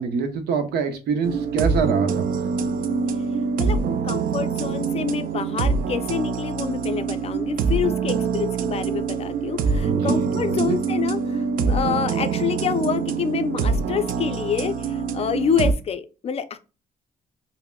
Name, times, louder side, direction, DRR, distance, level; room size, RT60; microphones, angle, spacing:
voice 1, 0.0-2.2 9.8-10.8, right 5 dB, 80° right, 6 dB, 0.8 m, -25 dB
sound 1, 1.2-15.7, right 5 dB, 60° right, 0.4 m, -25 dB
voice 2, 3.6-16.6, left 7 dB, 40° left, 10 dB, 0.4 m, -27 dB
5.6 x 2.0 x 2.3 m, 0.32 s
cardioid pair, 125°, 17 cm